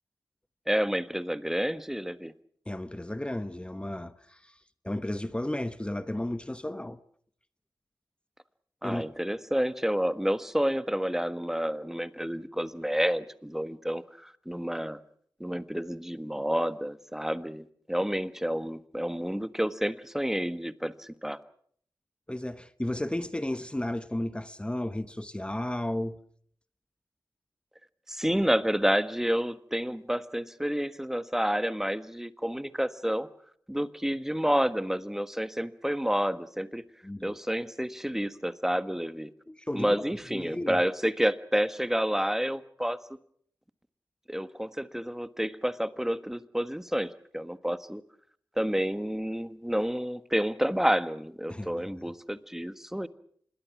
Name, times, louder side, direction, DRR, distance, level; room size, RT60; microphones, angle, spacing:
voice 1, 0.7-2.3 8.8-15.0 15.4-21.4 28.1-33.3 33.7-36.8 37.2-39.3 39.7-43.0 44.3-48.0 48.6-53.1, equal, 5° right, 1.4 m, -29 dB
voice 2, 2.7-4.5 4.8-7.0 8.8-9.0 22.3-26.2 37.0-37.4 39.5-40.0 40.3-40.8 51.5-52.0, left 1 dB, 15° left, 1.1 m, -33 dB
26.5 x 22.0 x 6.1 m
cardioid pair, 55°, 7 cm